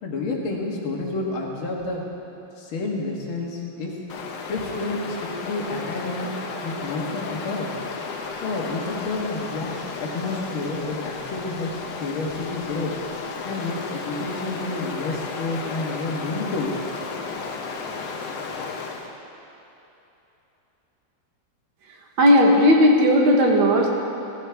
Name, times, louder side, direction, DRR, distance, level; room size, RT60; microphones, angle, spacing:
voice 1, 0.0-2.1 2.6-3.9 4.5-6.3 6.6-7.7 8.4-9.7 10.0-11.7 12.0-12.9 13.4-17.4 17.9-18.0, left 3 dB, 80° left, -1 dB, 2.3 m, -29 dB
Stream, 4.1-19.2, left 4 dB, 65° left, 1.5 m, -33 dB
voice 2, 22.2-23.9, equal, 70° right, 0 dB, 2.0 m, -15 dB
15.0 x 13.0 x 3.4 m, 3.0 s
omnidirectional pair, 2.2 m